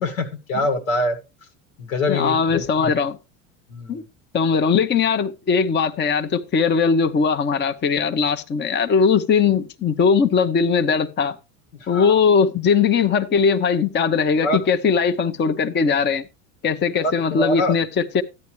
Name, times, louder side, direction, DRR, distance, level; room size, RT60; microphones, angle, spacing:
voice 1, 0.0-1.2 1.8-2.9 3.7-4.0 11.9-12.2 14.4-14.6 17.0-17.7, left 1 dB, 80° left, 2.0 m, -24 dB
voice 2, 2.1-3.2 3.9-4.0 4.3-11.4 11.9-16.2 16.6-18.2, left 5 dB, 25° left, 0.8 m, -19 dB
13.0 x 9.7 x 3.1 m
hypercardioid pair, 90°, 41 cm